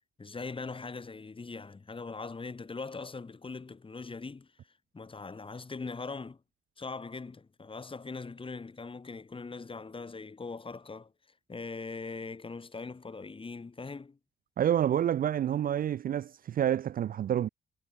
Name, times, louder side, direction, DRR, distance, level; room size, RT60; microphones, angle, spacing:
voice 1, 0.2-4.5 4.9-6.4 6.8-11.1 11.5-14.2, left 4 dB, 25° left, 3.0 m, -41 dB
voice 2, 14.6-17.5, right 10 dB, 45° right, 0.4 m, -28 dB
cardioid pair, 90°, 20 cm